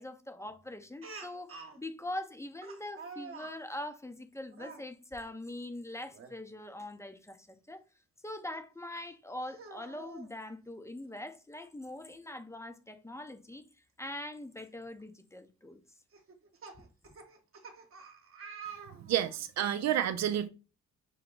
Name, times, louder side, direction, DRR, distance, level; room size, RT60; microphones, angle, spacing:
voice 1, 0.0-7.8 8.2-13.7 14.0-15.8 16.8-16.9, left 1 dB, 10° left, 0.7 m, -43 dB
Speech, 1.0-1.8 2.6-3.6 4.5-4.9 6.1-6.4 6.8-6.9 8.5-8.6 9.4-10.3 11.6-11.7 12.1-12.2 14.0-14.1 14.8-15.0 16.1-19.4, right 5 dB, 45° right, 1.1 m, -48 dB
voice 2, 19.0-20.5, right 11 dB, 60° right, 0.5 m, -30 dB
6.1 x 2.2 x 3.8 m
cardioid pair, 90°, 30 cm